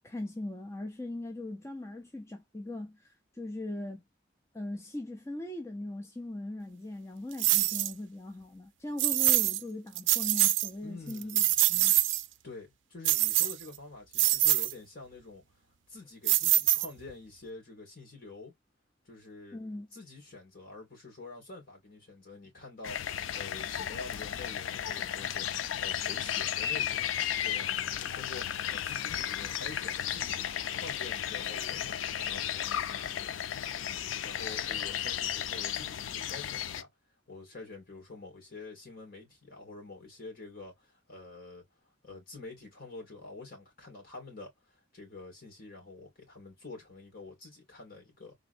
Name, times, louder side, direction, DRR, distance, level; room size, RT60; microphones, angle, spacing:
voice 1, 0.0-4.0 4.5-11.4 11.7-12.0 19.5-19.9, left 1 dB, 15° left, 0.6 m, -39 dB
sound 1, 7.4-7.9 9.0-9.6 10.0-10.7 11.1-12.2 13.0-13.8 14.1-14.7 16.3-17.1, right 14 dB, 70° right, 0.4 m, -25 dB
voice 2, 10.8-11.5 12.4-15.4 15.9-18.5 19.1-19.6 19.9-27.1 27.4-33.3 34.2-36.9 37.3-41.6 42.0-48.3, left 3 dB, 50° left, 2.3 m, -47 dB
sound 2, 22.8-36.8, left 10 dB, 90° left, 0.4 m, -34 dB
3.8 x 3.1 x 2.6 m
head